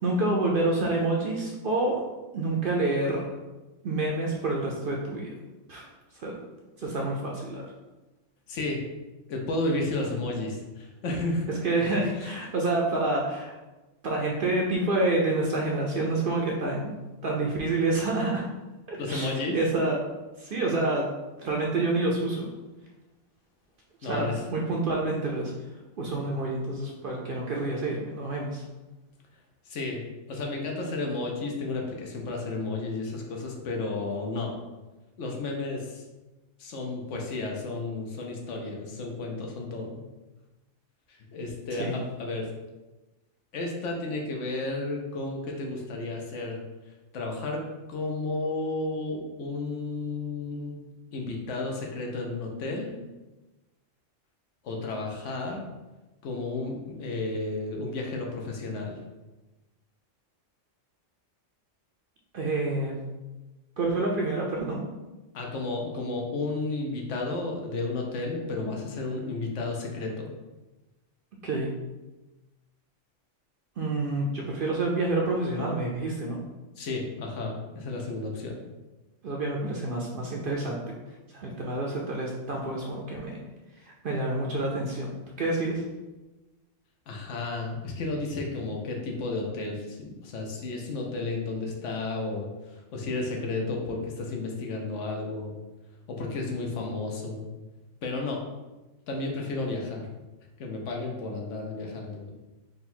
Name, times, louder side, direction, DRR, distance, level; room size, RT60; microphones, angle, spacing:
voice 1, 0.0-2.0 2.3-3.3 3.8-5.3 5.7-5.9 6.2-6.4 6.8-7.6 11.5-13.5 14.0-16.9 17.2-18.5 18.9-20.0 20.4-21.1 21.4-22.5 24.0-25.5 26.0-28.6 41.8-42.0 62.3-63.0 63.8-64.8 71.4-71.7 73.8-76.4 79.2-80.8 81.3-83.4 83.8-85.1 85.4-85.8, right 2 dB, 60° right, -2 dB, 0.6 m, -28 dB
voice 2, 8.5-8.8 9.3-11.5 19.0-19.6 24.0-24.3 29.7-34.6 35.2-36.0 36.6-40.0 41.1-42.5 43.5-46.6 47.1-47.6 47.9-50.8 51.1-52.9 54.6-55.7 56.2-58.9 65.3-70.3 76.8-78.6 87.1-92.5 92.9-95.5 96.1-97.5 98.0-98.4 99.1-100.1 100.6-102.3, left 2 dB, 75° left, 0 dB, 1.0 m, -32 dB
3.9 x 2.3 x 4.2 m, 1.1 s
omnidirectional pair, 1.3 m